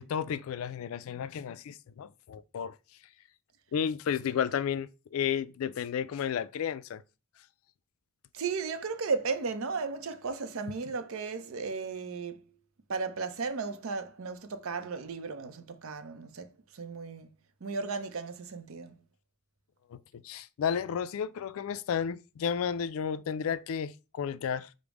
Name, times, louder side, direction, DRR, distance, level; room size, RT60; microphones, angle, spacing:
voice 1, 0.0-2.8 3.7-7.0 19.9-24.7, left 7 dB, 75° left, 0.3 m, -32 dB
voice 2, 8.3-12.4 12.9-17.3 17.6-18.9, right 4 dB, 70° right, 0.5 m, -35 dB
5.1 x 2.0 x 4.7 m
head